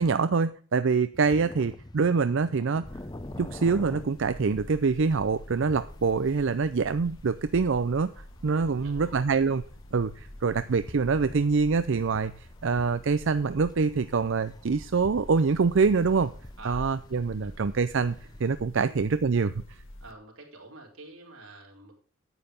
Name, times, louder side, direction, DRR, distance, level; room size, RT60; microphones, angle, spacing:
voice 1, 0.0-2.9 3.4-8.1 8.4-9.6 9.9-16.3 16.7-18.2 18.4-19.8, right 4 dB, 60° right, 12 dB, 0.5 m, -25 dB
sound 1, 1.1-18.5, left 1 dB, 20° left, 0.8 m, -47 dB
sound 2, 2.8-20.1, left 1 dB, 70° left, 1.5 m, -47 dB
voice 2, 8.7-9.2 16.6-16.9 17.4-17.5 18.2-18.4 18.7-19.0 20.0-21.9, right 2 dB, 90° right, 1 dB, 4.2 m, -47 dB
9.9 x 9.1 x 5.2 m, 0.41 s
head